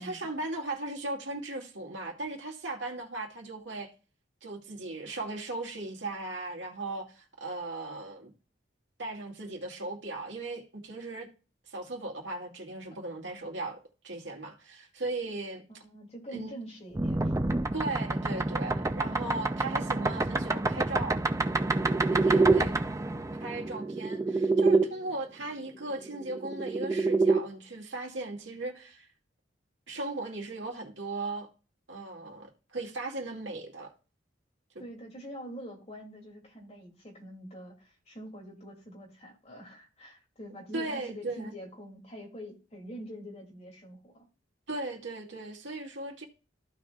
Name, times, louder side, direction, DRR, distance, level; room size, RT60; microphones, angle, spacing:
voice 1, 0.0-3.9 4.4-8.3 9.0-11.3 11.7-15.6 16.3-16.5 17.7-21.2 22.1-22.8 23.4-29.1 29.9-31.5 31.9-33.9 34.7-34.8 40.7-41.5 44.7-46.3, right 2 dB, 75° right, 2.2 m, -37 dB
voice 2, 15.7-17.5 34.8-44.3, right 1 dB, 35° left, 2.7 m, -45 dB
sound 1, 16.9-24.8 26.1-27.4, right 3 dB, 15° right, 0.4 m, -27 dB
15.0 x 5.1 x 2.4 m
head